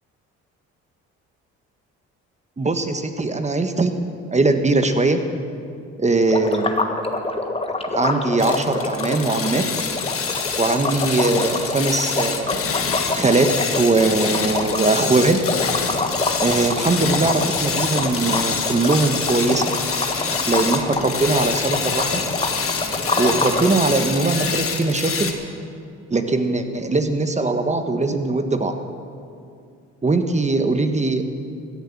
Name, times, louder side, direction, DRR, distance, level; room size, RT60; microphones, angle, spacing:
voice 1, 2.6-3.9 4.3-5.2 6.0-6.7 7.9-9.6 10.6-12.7 13.1-15.4 16.4-19.7 20.5-22.2 23.2-25.3 26.1-28.7 30.0-31.2, right 3 dB, 25° right, 7 dB, 1.3 m, -20 dB
sound 1, 6.3-23.7, left 2 dB, 20° left, 1.5 m, -26 dB
sound 2, 8.4-25.3, left 6 dB, 50° left, 1.7 m, -26 dB
sound 3, 15.4-24.6, right 3 dB, 60° right, 3.4 m, -37 dB
17.0 x 10.5 x 7.3 m, 2.4 s
supercardioid pair, 75°, 30 cm